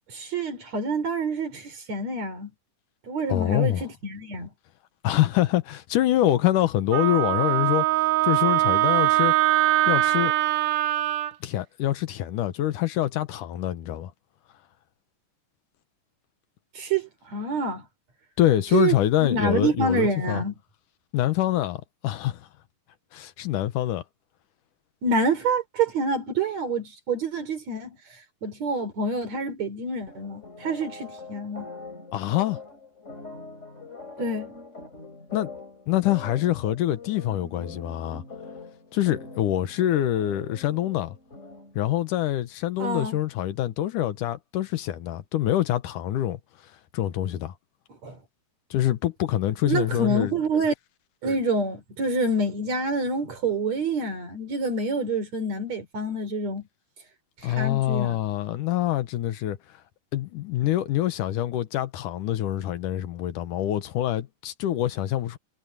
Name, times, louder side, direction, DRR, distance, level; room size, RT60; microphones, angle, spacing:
voice 1, 0.1-2.5 3.1-4.5 16.7-17.8 18.7-20.5 25.0-28.0 28.4-31.7 34.2-34.5 42.8-43.2 48.0-48.2 49.7-50.7 51.2-56.6 57.4-58.2, right 2 dB, 55° right, 5.0 m, -27 dB
voice 2, 3.3-3.9 5.0-9.3 9.9-10.3 11.4-14.1 18.4-20.4 21.1-22.5 23.1-24.0 32.1-32.6 35.3-35.5 35.9-38.2 38.9-41.2 41.8-46.4 46.9-47.5 48.7-50.3 57.4-59.6 60.1-65.4, left 13 dB, 80° left, 2.6 m, -25 dB
Wind instrument woodwind instrument, 6.9-11.3, right 16 dB, 80° right, 2.4 m, -22 dB
sound 1, 30.1-41.8, left 3 dB, 20° left, 4.9 m, -43 dB
omnidirectional pair, 3.7 m